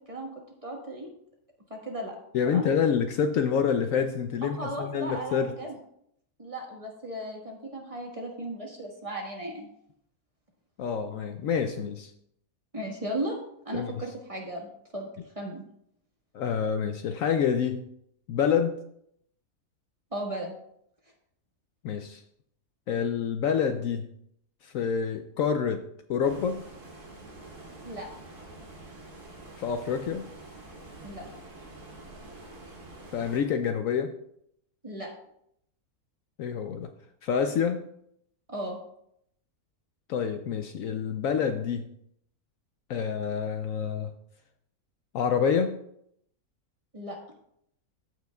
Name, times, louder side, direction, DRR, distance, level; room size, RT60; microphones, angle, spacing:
voice 1, 0.6-1.1 1.7-2.2 2.4-2.7 4.4-5.7 6.4-9.7 12.7-13.4 13.6-15.1 15.3-15.6 20.1-20.5 27.8-28.1 31.0-31.3 34.8-35.1 38.5-38.8 46.9-47.2, right 1 dB, 25° right, -1 dB, 1.5 m, -36 dB
voice 2, 2.3-5.5 10.8-12.1 13.7-13.9 16.3-17.8 18.3-18.8 21.8-22.2 22.9-24.1 24.6-25.8 26.1-26.7 29.6-30.3 33.1-34.1 36.4-36.9 37.2-37.9 40.1-41.9 42.9-44.1 45.1-45.8, left 7 dB, 70° left, 7 dB, 0.9 m, -27 dB
Stream, 26.2-33.4, right 2 dB, 90° right, 2.8 m, -46 dB
14.0 x 6.1 x 2.3 m, 0.72 s
omnidirectional pair, 1.6 m